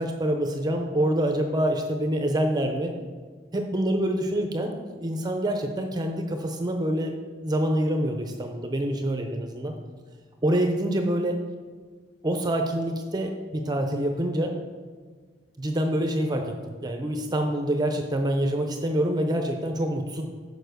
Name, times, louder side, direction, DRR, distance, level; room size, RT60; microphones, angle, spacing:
voice 1, 0.0-3.0 3.5-7.1 7.4-9.7 10.4-11.4 12.2-14.5 15.6-20.2, right 1 dB, 25° right, 4 dB, 0.6 m, -26 dB
6.9 x 4.8 x 6.4 m, 1.5 s
head